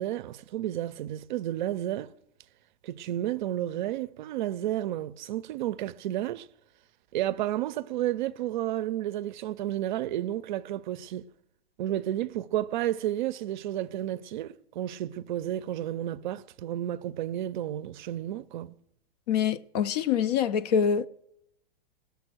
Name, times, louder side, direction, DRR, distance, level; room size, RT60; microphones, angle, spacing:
voice 1, 0.0-2.1 2.8-6.5 7.1-11.2 11.8-18.8, right 13 dB, 55° right, 0.5 m, -31 dB
voice 2, 19.3-21.1, left 8 dB, 45° left, 0.4 m, -25 dB
17.5 x 7.0 x 6.1 m
supercardioid pair, 160°, 29 cm